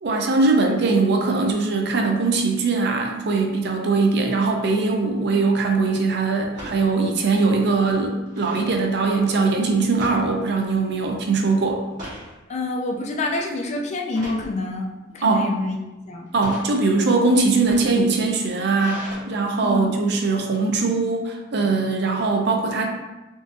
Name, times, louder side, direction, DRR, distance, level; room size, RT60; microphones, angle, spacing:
voice 1, 0.0-11.8 15.2-15.5 16.3-22.9, right 3 dB, 60° right, 2 dB, 0.5 m, -21 dB
sound 1, 5.0-5.1 6.5-6.8 7.3-7.4 7.7-8.7 10.0-10.8 11.1-11.4 11.8-12.3 12.9-13.2 14.1-14.5 15.2-15.7 16.3-16.7 17.5-19.1, equal, 45° right, 1.3 m, -38 dB
voice 2, 12.5-15.8 16.0-16.3 19.6-19.9, left 2 dB, 40° left, 1 dB, 0.4 m, -27 dB
3.7 x 2.5 x 2.5 m, 1.1 s
head